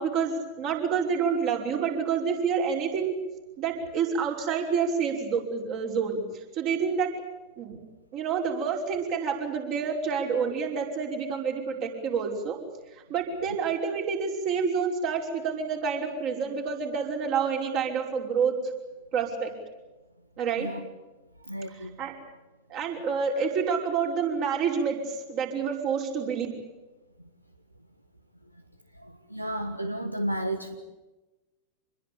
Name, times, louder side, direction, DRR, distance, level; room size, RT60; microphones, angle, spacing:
voice 1, 0.0-3.1 3.6-6.2 6.5-7.1 7.6-7.8 8.1-12.6 13.1-18.6 19.1-19.5 20.4-20.7 22.0-22.1 22.7-26.5, right 6 dB, 40° right, 1 dB, 5.6 m, -28 dB
voice 2, 21.5-22.0 29.0-30.7, right 1 dB, 85° right, 9 dB, 1.3 m, -32 dB
26.5 x 21.5 x 8.7 m, 1.1 s
figure-of-eight pair, 90°, 0 cm